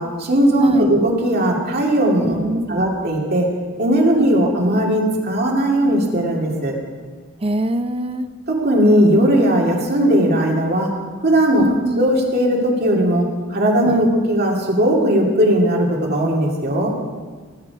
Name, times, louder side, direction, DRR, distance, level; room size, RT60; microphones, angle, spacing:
voice 1, 0.0-2.4 2.7-6.8 8.5-10.9 11.2-11.6 12.0-16.9, right 1 dB, 50° right, -1 dB, 2.5 m, -18 dB
voice 2, 2.2-2.9 4.1-4.4 7.4-8.3 11.5-12.1 13.8-14.1, right 1 dB, 30° right, 10 dB, 0.6 m, -23 dB
19.0 x 9.1 x 4.7 m, 1.5 s
head